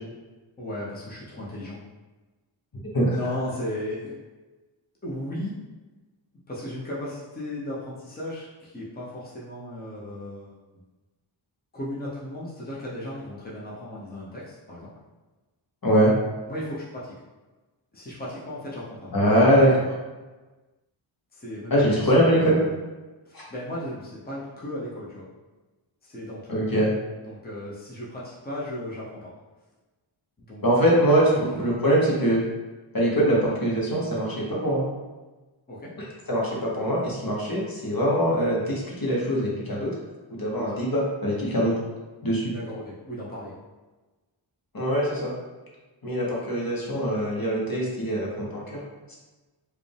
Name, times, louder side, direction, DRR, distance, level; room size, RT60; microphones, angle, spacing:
voice 1, 0.6-1.8 3.1-4.1 5.0-5.6 6.5-10.5 11.7-14.9 16.5-17.1 17.9-19.1 19.4-19.9 21.3-22.8 23.3-25.3 26.0-26.5 27.1-29.3 30.4-30.6 31.3-31.4 35.7-35.9 40.6-40.7 42.5-43.5, left 1 dB, 20° left, -7 dB, 0.9 m, -35 dB
voice 2, 19.1-19.7 21.7-22.6 23.3-23.4 26.5-26.9 30.6-32.4 32.9-34.9 36.3-39.9 40.3-41.7 42.2-42.5 44.7-45.3 46.0-48.8, equal, 45° left, -4 dB, 1.2 m, -22 dB
4.8 x 2.4 x 3.4 m, 1.2 s
wide cardioid pair, 70°, 48 cm